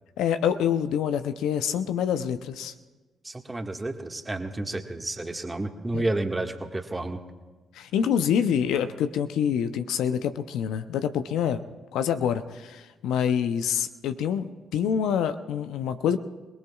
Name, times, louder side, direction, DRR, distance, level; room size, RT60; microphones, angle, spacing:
voice 1, 0.2-2.7 5.9-6.0 7.7-11.6 11.9-14.5 14.7-16.2, left 8 dB, 75° left, 10 dB, 0.6 m, -26 dB
voice 2, 3.2-7.2, right 2 dB, 20° right, 4 dB, 1.7 m, -31 dB
28.0 x 19.0 x 2.4 m, 1.3 s
hypercardioid pair, 50°, 0 cm